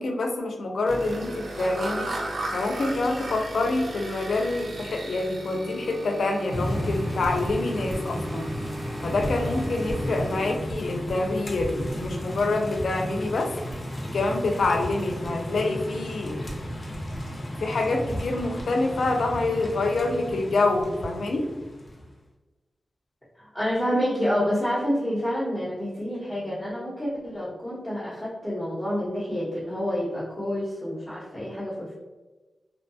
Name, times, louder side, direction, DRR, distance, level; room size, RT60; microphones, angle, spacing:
voice 1, 0.0-2.1 2.5-8.5 9.0-13.5 14.1-16.4 17.6-21.5, left 2 dB, 75° left, 3 dB, 0.4 m, -26 dB
sound 1, 0.9-10.6, right 1 dB, 60° right, 0.5 m, -36 dB
sound 2, 6.5-22.1, equal, 30° left, 0.6 m, -33 dB
voice 2, 23.4-31.9, equal, 5° left, -11 dB, 0.9 m, -28 dB
2.6 x 2.2 x 2.6 m, 1.2 s
wide cardioid pair, 105°, 0 cm